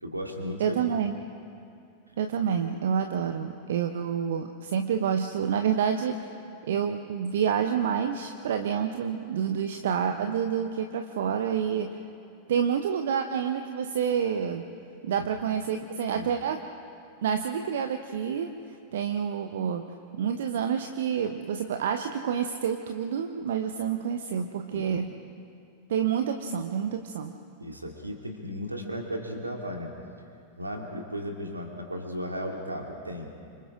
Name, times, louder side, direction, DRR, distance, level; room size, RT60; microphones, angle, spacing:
voice 1, 0.0-0.8 15.2-15.3 16.1-16.3 24.7-24.9 27.6-29.9 30.6-33.3, equal, 85° right, 1 dB, 2.7 m, -35 dB
voice 2, 0.6-1.2 2.2-6.4 6.6-12.0 12.5-14.6 15.0-16.6 17.2-19.8 20.1-25.1 25.9-27.3, right 7 dB, 60° right, 7 dB, 0.9 m, -28 dB
29.0 x 25.5 x 3.7 m, 2.5 s
figure-of-eight pair, 90°, 0 cm